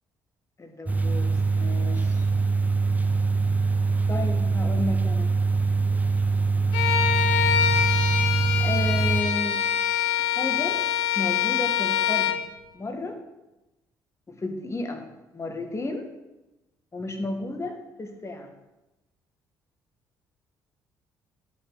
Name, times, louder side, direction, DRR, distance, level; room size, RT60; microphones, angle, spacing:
voice 1, 0.6-2.2 4.1-5.3 8.6-9.6 10.2-10.8 11.1-12.4 12.7-13.2 14.3-15.0 15.3-16.1 16.9-18.5, left 2 dB, 30° left, 5 dB, 1.6 m, -32 dB
sound 1, 0.9-9.2, right 4 dB, 15° right, 0.7 m, -23 dB
Bowed string instrument, 6.7-12.4, left 9 dB, 80° left, 0.6 m, -24 dB
11.0 x 5.3 x 4.0 m, 1.0 s
hypercardioid pair, 55°, 10 cm